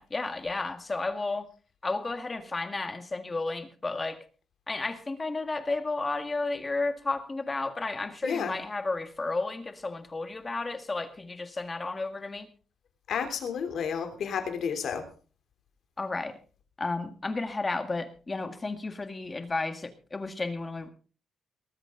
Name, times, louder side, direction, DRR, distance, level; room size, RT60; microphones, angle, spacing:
voice 1, 0.0-1.5 1.8-4.2 4.7-12.5 16.0-16.4 16.8-20.9, left 3 dB, 20° left, 8 dB, 1.7 m, -32 dB
voice 2, 8.2-8.5 13.1-15.1, left 7 dB, 60° left, 7 dB, 3.2 m, -31 dB
19.5 x 13.5 x 3.8 m, 0.37 s
cardioid pair, 165°, 0 cm